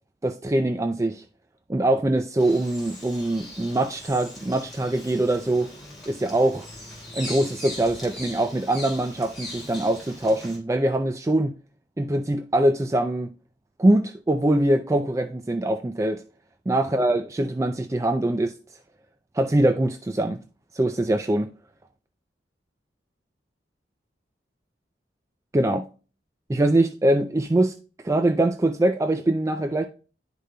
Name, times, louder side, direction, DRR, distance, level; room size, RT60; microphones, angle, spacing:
voice 1, 0.2-1.2 1.7-5.7 6.1-6.7 7.1-11.5 12.0-13.3 13.8-16.2 16.7-18.5 19.3-20.4 20.7-21.5 25.5-25.8 26.5-27.7 28.0-29.9, right 1 dB, 15° right, 0.3 m, -23 dB
Bird vocalization bird call bird song, 2.4-10.6, left 1 dB, ahead, 3.1 m, -40 dB
10.5 x 5.0 x 2.2 m
head